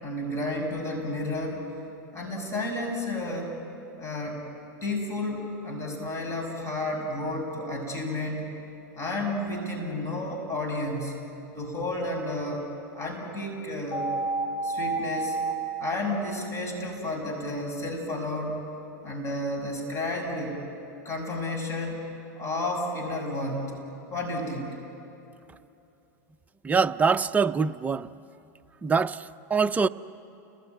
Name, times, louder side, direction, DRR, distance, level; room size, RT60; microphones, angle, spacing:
voice 1, 0.0-1.6 2.1-3.5 4.0-4.4 4.8-8.5 8.9-11.1 11.5-12.7 12.9-14.1 14.6-15.4 15.8-18.6 19.0-20.6 21.0-22.0 22.4-23.7 24.1-24.7, left 1 dB, 30° left, 6.0 m, -31 dB
sound 1, 13.9-15.5, right 3 dB, 85° left, 2.1 m, -29 dB
voice 2, 26.6-28.1 28.8-29.9, right 5 dB, 15° right, 0.6 m, -24 dB
29.5 x 20.5 x 9.3 m
hypercardioid pair, 115°, 10 cm